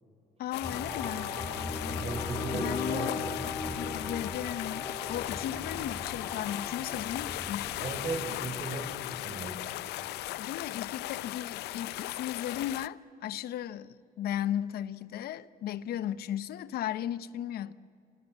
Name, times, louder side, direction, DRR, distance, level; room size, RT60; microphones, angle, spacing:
voice 1, 0.4-1.3 2.5-3.3 3.8-7.9 10.4-17.7, left 11 dB, 65° left, 0.9 m, -36 dB
sound 1, 0.5-12.9, left 17 dB, 85° left, 0.6 m, -38 dB
sound 2, 0.6-11.0, left 3 dB, 20° left, 5.4 m, -39 dB
voice 2, 2.0-3.3 7.8-9.6, right 3 dB, 35° right, 5.4 m, -36 dB
27.5 x 27.0 x 7.5 m
cardioid pair, 110°, 17 cm